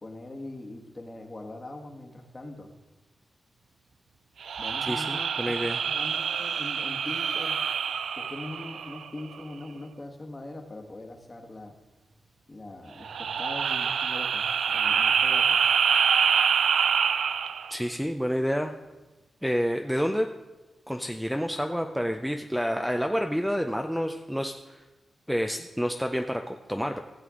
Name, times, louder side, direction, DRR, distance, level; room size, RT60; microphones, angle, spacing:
voice 1, 0.0-2.7 4.6-7.6 8.2-11.7 12.5-15.6, left 2 dB, 30° left, 3 dB, 1.4 m, -41 dB
sound 1, 4.4-9.2 13.0-17.8, right 7 dB, 85° right, 0.3 m, -26 dB
voice 2, 4.8-5.8 17.7-18.7 19.4-20.3 20.9-24.8 25.3-27.0, equal, ahead, 4 dB, 0.5 m, -29 dB
15.5 x 7.6 x 3.7 m, 1.1 s
wide cardioid pair, 100°, 0 cm